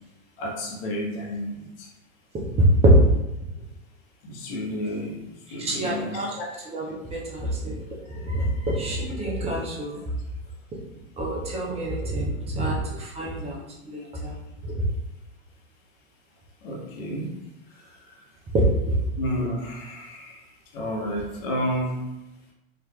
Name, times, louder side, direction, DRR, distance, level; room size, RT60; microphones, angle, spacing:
voice 1, 0.4-1.9 4.2-5.2 5.5-6.5 16.6-17.3 19.2-20.4 20.7-22.0, equal, 45° left, -1 dB, 1.0 m, -31 dB
voice 2, 2.6-3.1 5.6-6.3 6.7-7.8 8.1-10.0 11.2-13.6 13.9-14.4 14.7-14.8 18.5-18.6, right 1 dB, 15° right, -3 dB, 0.5 m, -24 dB
4.4 x 2.6 x 2.2 m, 0.94 s
figure-of-eight pair, 90°, 39 cm